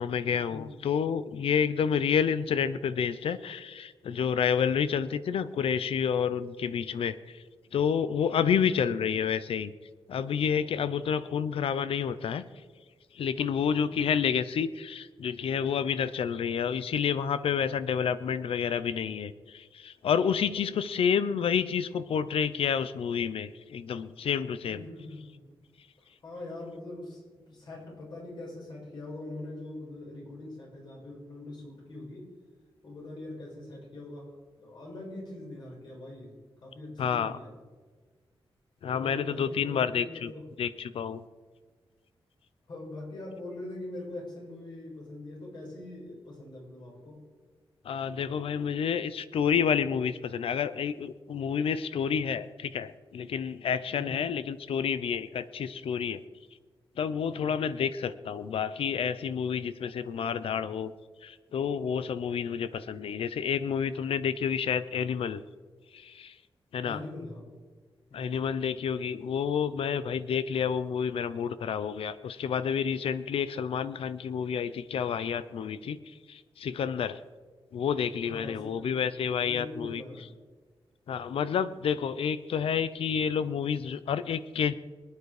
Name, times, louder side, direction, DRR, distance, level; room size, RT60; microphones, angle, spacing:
voice 1, 0.0-7.4 7.7-9.7 10.1-12.4 13.1-24.9 37.0-37.4 38.8-40.3 40.6-41.3 47.8-56.2 57.0-60.9 61.2-65.4 65.9-66.3 66.7-67.0 68.1-77.2 77.7-80.0 81.1-84.7, left 7 dB, 85° left, 14 dB, 0.7 m, -29 dB
voice 2, 24.7-25.5 26.2-27.2 27.5-32.3 32.8-36.3 36.6-37.5 38.8-40.4 42.7-47.2 53.9-54.2 57.3-57.5 66.8-67.5 68.1-68.5 78.2-79.1 79.4-80.3, left 2 dB, 50° left, -2 dB, 6.0 m, -42 dB
24.0 x 9.6 x 4.9 m, 1.4 s
wide cardioid pair, 180°, 9 cm